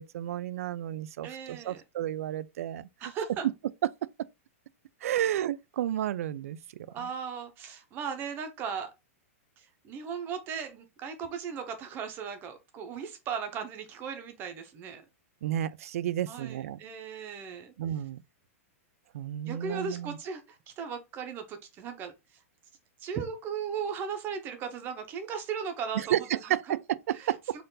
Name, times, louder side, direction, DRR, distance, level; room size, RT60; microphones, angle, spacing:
voice 1, 0.0-2.9 5.0-6.6 15.4-16.8 17.8-18.2 19.1-20.2 26.0-27.6, right 11 dB, 70° right, 0.3 m, -31 dB
voice 2, 1.2-1.8 3.0-3.5 6.9-8.9 9.6-15.0 16.3-17.7 19.5-22.1 23.0-26.8 27.1-27.6, right 6 dB, 25° right, 0.8 m, -37 dB
4.4 x 2.5 x 3.8 m
supercardioid pair, 155°, 8 cm